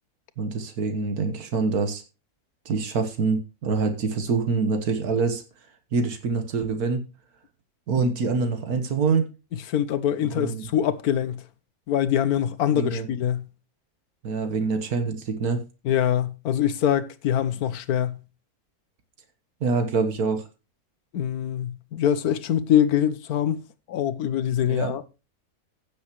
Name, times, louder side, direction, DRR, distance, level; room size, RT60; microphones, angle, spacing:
voice 1, 0.4-2.0 2.7-5.4 5.9-7.0 7.9-9.3 10.3-10.7 12.7-13.1 14.2-15.6 19.6-20.5 24.7-24.9, right 4 dB, 80° right, 1.7 m, -25 dB
voice 2, 9.7-11.4 11.9-13.5 15.8-18.2 21.1-23.6 23.9-25.0, left 10 dB, 80° left, 1.3 m, -24 dB
16.0 x 7.1 x 3.0 m
omnidirectional pair, 1.6 m